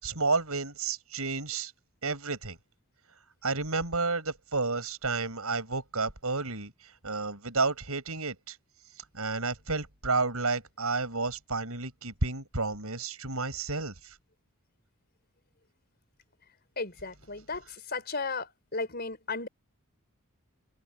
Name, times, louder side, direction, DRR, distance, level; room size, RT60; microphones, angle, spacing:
voice 1, 0.0-1.7 2.0-2.6 3.4-6.7 7.0-8.5 9.1-13.9, right 3 dB, 85° right, 6.2 m, -31 dB
voice 2, 16.8-19.5, left 3 dB, 45° left, 4.9 m, -35 dB
open air
head